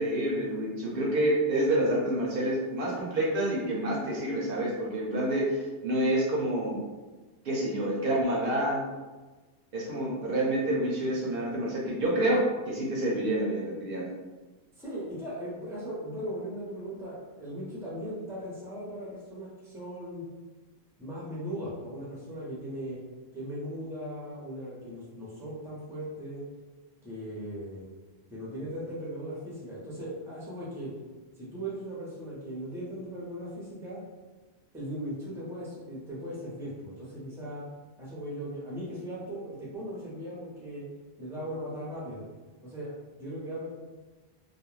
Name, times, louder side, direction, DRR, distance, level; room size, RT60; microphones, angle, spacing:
voice 1, 0.0-6.8 7.4-8.8 9.7-14.1, right 1 dB, 65° right, -4 dB, 0.7 m, -28 dB
voice 2, 14.8-20.2 21.0-23.0 23.3-26.4 27.0-27.9 28.3-30.9 31.4-34.0 34.7-37.7 38.0-40.9 41.2-42.2 42.6-43.7, equal, 5° right, -7 dB, 0.6 m, -38 dB
2.4 x 2.1 x 3.1 m, 1.2 s
omnidirectional pair, 1.1 m